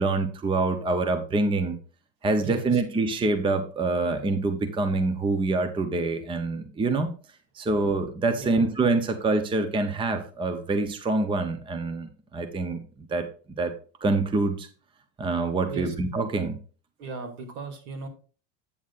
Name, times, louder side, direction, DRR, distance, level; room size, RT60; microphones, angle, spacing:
voice 1, 0.0-1.8 2.2-7.1 7.5-13.3 13.6-13.7 14.0-14.7 15.2-16.6, right 3 dB, 15° right, 8 dB, 0.7 m, -26 dB
voice 2, 2.4-2.8 8.4-8.7 15.6-15.9 17.0-18.1, right 3 dB, 70° right, 4 dB, 2.7 m, -37 dB
9.2 x 8.5 x 2.5 m, 0.37 s
supercardioid pair, 140°, 38 cm